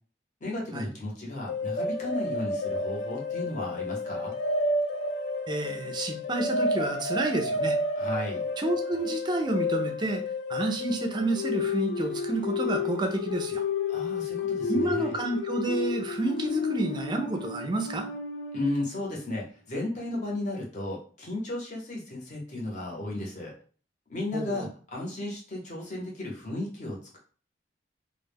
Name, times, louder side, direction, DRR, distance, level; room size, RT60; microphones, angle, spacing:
voice 1, 0.4-4.3 8.0-8.5 13.9-15.1 18.5-23.5 24.1-27.2, left 2 dB, 45° left, -2 dB, 0.8 m, -34 dB
sound 1, 1.5-18.9, left 3 dB, 80° left, 0.3 m, -31 dB
voice 2, 5.5-7.8 8.6-10.2 10.5-13.6 14.7-18.1 24.3-24.7, right 2 dB, 25° right, 4 dB, 0.4 m, -29 dB
2.1 x 2.1 x 3.3 m, 0.41 s
head